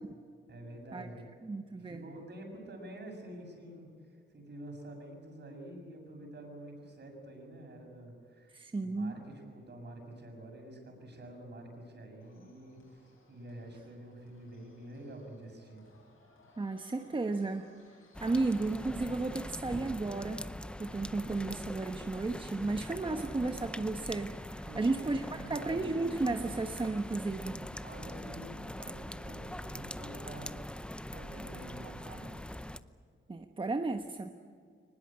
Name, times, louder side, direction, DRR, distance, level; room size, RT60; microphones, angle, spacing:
voice 1, 0.5-1.3 1.6-15.9 24.6-25.8 27.8-30.6 31.1-32.4, right 1 dB, 55° right, 2 dB, 7.0 m, -48 dB
voice 2, 1.4-2.0 8.5-9.2 16.6-17.6 18.2-20.4 20.8-27.6 33.3-34.3, right 3 dB, 25° right, 5 dB, 1.2 m, -33 dB
sound 1, 12.2-19.0, left 2 dB, 80° left, 7.9 m, -64 dB
sound 2, 18.1-32.8, left 1 dB, 5° left, 0.7 m, -42 dB
23.5 x 20.5 x 8.7 m, 2.1 s
wide cardioid pair, 120°, 21 cm